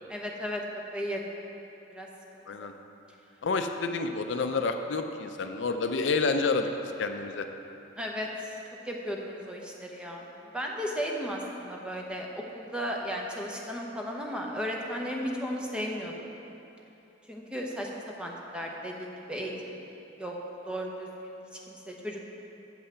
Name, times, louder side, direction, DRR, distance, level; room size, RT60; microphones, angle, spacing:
voice 1, 0.1-0.6 0.9-1.4 1.9-2.1 2.3-2.7 8.0-8.5 8.8-10.3 10.5-16.3 17.3-17.9 18.2-19.8 20.2-20.3 20.7-22.3, equal, 5° right, -1 dB, 0.8 m, -35 dB
voice 2, 3.4-6.7 7.0-7.5, left 4 dB, 70° left, 6 dB, 0.5 m, -29 dB
7.6 x 5.6 x 6.7 m, 2.9 s
head